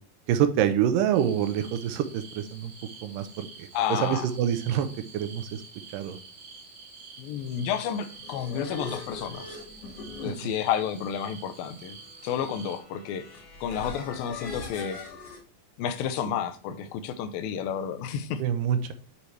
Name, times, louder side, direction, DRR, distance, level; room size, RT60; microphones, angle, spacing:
voice 1, 0.3-2.7 3.0-4.9 5.1-5.6 5.9-6.2 10.2-10.5 18.4-18.9, right 9 dB, 80° right, 9 dB, 2.2 m, -26 dB
sound 1, 1.1-12.8, right 4 dB, 45° right, 1.7 m, -48 dB
voice 2, 3.7-4.3 7.2-9.5 10.2-12.0 12.2-13.3 13.6-15.0 15.8-18.4, left 8 dB, 80° left, 10 dB, 2.5 m, -31 dB
sound 2, 8.0-15.4, left 4 dB, 60° left, 3.3 m, -41 dB
9.7 x 4.5 x 3.3 m, 0.39 s
omnidirectional pair, 4.2 m